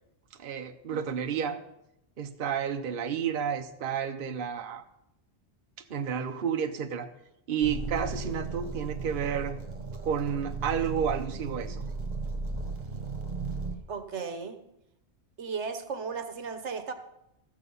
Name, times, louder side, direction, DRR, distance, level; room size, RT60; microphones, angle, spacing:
voice 1, 0.4-1.6 2.2-4.8 5.9-7.1 7.5-9.6 10.0-11.8, right 7 dB, 55° right, 5 dB, 0.9 m, -31 dB
sound 1, 7.6-13.8, right 4 dB, 40° right, 1.5 m, -35 dB
voice 2, 13.9-14.6 15.4-16.9, right 5 dB, 75° right, 8 dB, 1.3 m, -35 dB
14.5 x 7.2 x 5.5 m, 0.86 s
omnidirectional pair, 1.2 m